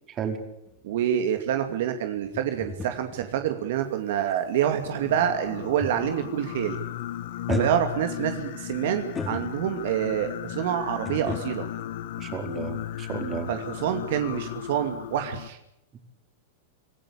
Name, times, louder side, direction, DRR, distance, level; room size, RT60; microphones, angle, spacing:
sound 1, 0.7-6.4 6.6-7.0 7.5-10.0 11.1-13.0 13.3-13.4, left 4 dB, 20° left, 3.4 m, -38 dB
voice 1, 0.8-6.8 7.6-11.7 13.5-15.6, right 10 dB, 65° right, 6 dB, 2.5 m, -27 dB
Singing, 4.8-15.5, left 12 dB, 65° left, 1.6 m, -36 dB
voice 2, 12.2-13.5, right 8 dB, 30° right, 5 dB, 4.8 m, -32 dB
26.0 x 16.0 x 8.6 m, 0.85 s
hypercardioid pair, 115°, 0 cm